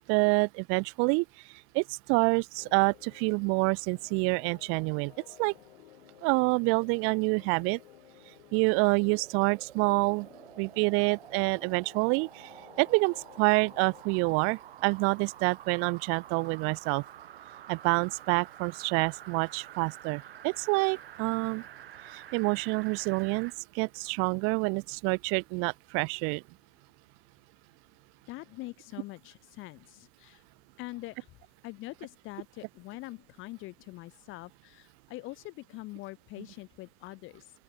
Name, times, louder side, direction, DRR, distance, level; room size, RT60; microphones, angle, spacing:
voice 1, 0.1-1.2 1.7-5.1 5.4-5.5 6.2-7.8 8.5-10.3 10.6-12.5 12.8-17.0 17.7-21.6 22.1-26.4, right 31 dB, 45° right, 1.5 m, -27 dB
sound 1, 2.6-14.0, left 14 dB, 70° left, 4.5 m, -56 dB
sound 2, 8.6-23.6 24.0-24.1, right 11 dB, 80° right, 1.6 m, -49 dB
voice 2, 28.3-30.4 30.8-31.3 31.6-37.5, left 20 dB, 45° left, 4.4 m, -44 dB
open air
hypercardioid pair, 110°, 29 cm